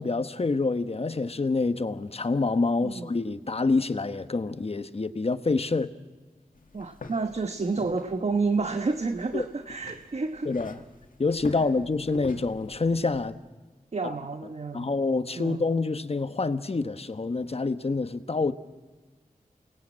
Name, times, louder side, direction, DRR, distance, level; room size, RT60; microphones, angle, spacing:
voice 1, 0.0-5.9 9.3-9.5 10.4-10.8 11.2-13.4 14.0-14.2 14.7-18.5, left 3 dB, 45° left, 1.1 m, -27 dB
sound 1, 6.5-13.3, left 3 dB, 70° left, 2.0 m, -45 dB
voice 2, 6.7-10.5 13.9-14.9 15.4-15.7, right 4 dB, 50° right, 1.1 m, -30 dB
29.0 x 19.5 x 8.8 m
wide cardioid pair, 75°, 15 cm